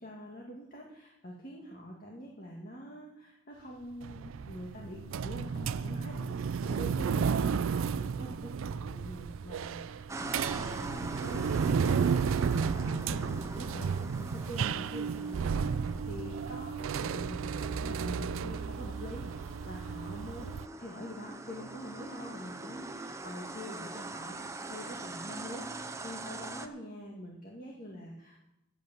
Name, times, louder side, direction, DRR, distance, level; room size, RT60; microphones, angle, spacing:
voice 1, 0.0-28.4, equal, 45° left, -1 dB, 2.0 m, -45 dB
sound 1, 4.0-20.7, right 6 dB, 80° right, 0.4 m, -33 dB
sound 2, 10.1-26.7, right 2 dB, 15° right, 0.6 m, -44 dB
12.0 x 8.1 x 7.5 m, 0.88 s
head